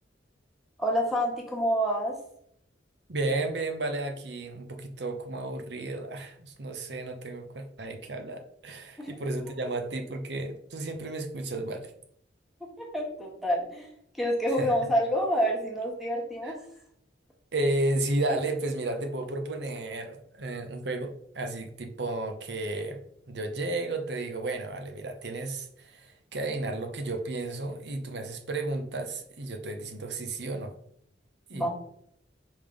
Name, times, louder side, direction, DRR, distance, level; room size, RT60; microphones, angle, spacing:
voice 1, 0.8-2.2 9.0-9.1 12.8-13.9 14.2-16.6 31.5-31.7, equal, ahead, -2 dB, 1.5 m, -27 dB
voice 2, 3.1-11.9 14.6-14.9 16.4-16.5 17.5-23.0 23.3-30.7 31.5-31.7, right 2 dB, 65° right, 7 dB, 0.9 m, -33 dB
5.2 x 3.7 x 5.1 m, 0.71 s
head